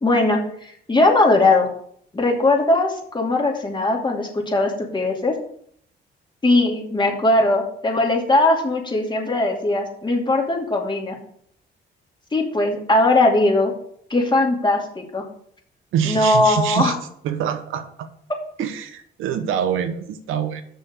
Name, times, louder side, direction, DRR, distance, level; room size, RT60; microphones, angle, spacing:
voice 1, 0.0-1.7 2.1-5.4 6.4-11.1 12.3-13.7 14.1-15.2 16.1-17.0, left 2 dB, 25° left, 1 dB, 2.5 m, -19 dB
voice 2, 15.9-17.0 17.2-18.1 18.6-20.6, right 8 dB, 90° right, 8 dB, 1.1 m, -25 dB
6.8 x 6.3 x 6.7 m, 0.65 s
cardioid pair, 90°, 20 cm